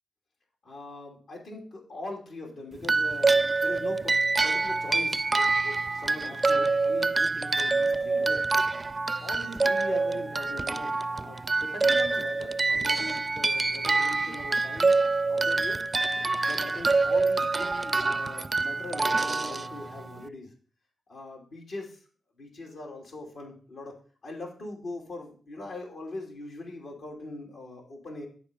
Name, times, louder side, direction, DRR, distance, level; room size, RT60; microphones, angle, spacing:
voice 1, 0.6-8.6 8.9-14.9 15.3-15.8 16.4-20.5 21.1-22.0 22.4-23.9 24.2-28.3, left 2 dB, 70° left, -1 dB, 2.7 m, -41 dB
sound 1, 2.8-20.2, right 3 dB, 35° right, 0.4 m, -26 dB
11.0 x 4.3 x 5.0 m, 0.42 s
supercardioid pair, 55°, 0 cm